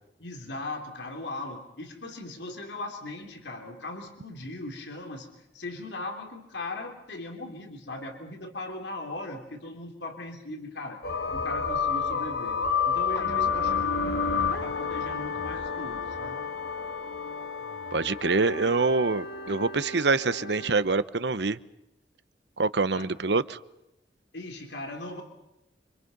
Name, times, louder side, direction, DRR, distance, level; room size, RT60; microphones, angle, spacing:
voice 1, 0.2-11.0 11.3-16.4 22.9-23.1 24.3-25.2, left 2 dB, 90° left, 3 dB, 3.4 m, -39 dB
sound 1, 11.0-20.7, left 5 dB, 65° left, 1.8 m, -30 dB
voice 2, 17.9-21.6 22.6-23.6, right 3 dB, 80° right, 14 dB, 1.0 m, -25 dB
29.0 x 26.0 x 5.5 m, 0.88 s
head